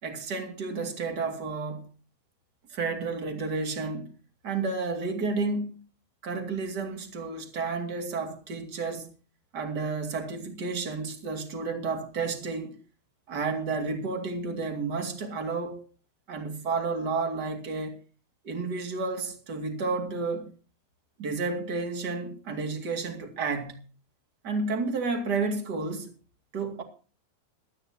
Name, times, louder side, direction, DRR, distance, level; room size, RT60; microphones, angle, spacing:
voice 1, 0.0-1.9 2.7-4.1 4.4-5.8 6.2-9.1 9.5-12.7 13.3-15.8 16.3-18.0 18.4-20.5 21.2-23.8 24.4-26.1 26.5-26.8, right 4 dB, 30° right, 2.3 m, -31 dB
21.5 x 13.0 x 2.9 m
omnidirectional pair, 4.6 m